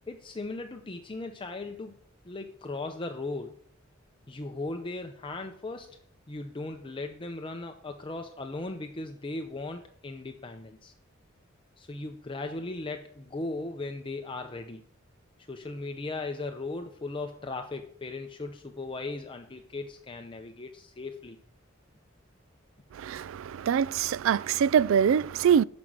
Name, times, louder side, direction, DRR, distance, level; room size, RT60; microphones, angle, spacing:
voice 1, 0.0-2.0 2.2-3.6 4.3-6.0 6.3-10.9 11.8-14.8 15.5-21.4, left 2 dB, 25° left, 0.6 m, -37 dB
voice 2, 23.0-25.6, right 8 dB, 70° right, 0.3 m, -24 dB
12.5 x 5.3 x 6.1 m
head